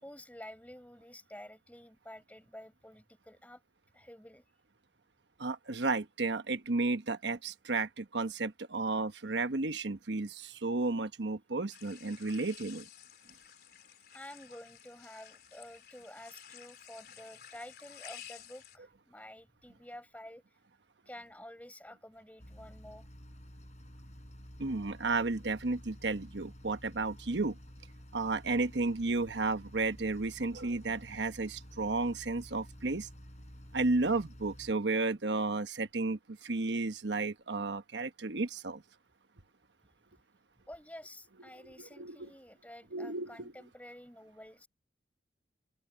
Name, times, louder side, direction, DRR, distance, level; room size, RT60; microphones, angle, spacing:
voice 1, 0.0-3.6 3.9-4.4 14.1-20.4 21.0-23.1 40.7-44.7, left 1 dB, 10° left, 4.7 m, -50 dB
voice 2, 5.4-12.9 24.6-27.6 28.1-33.1 33.7-38.8 41.6-42.3 42.9-43.5, right 3 dB, 85° right, 1.1 m, -33 dB
sound 1, 11.7-18.8, left 10 dB, 60° left, 3.7 m, -53 dB
sound 2, 22.4-34.7, equal, 40° left, 6.1 m, -51 dB
open air
head